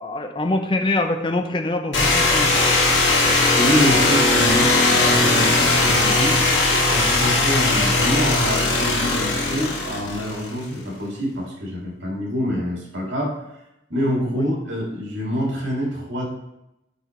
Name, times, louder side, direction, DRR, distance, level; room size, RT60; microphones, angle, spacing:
voice 1, 0.0-2.7 7.1-7.3 10.6-10.8 14.3-14.4, left 2 dB, 25° left, 5 dB, 0.6 m, -25 dB
sound 1, 1.9-10.7, left 2 dB, 90° left, 1.8 m, -19 dB
voice 2, 3.6-6.4 6.9-13.3 13.9-16.2, equal, 85° right, -2 dB, 2.1 m, -25 dB
8.0 x 5.3 x 3.1 m, 0.88 s
head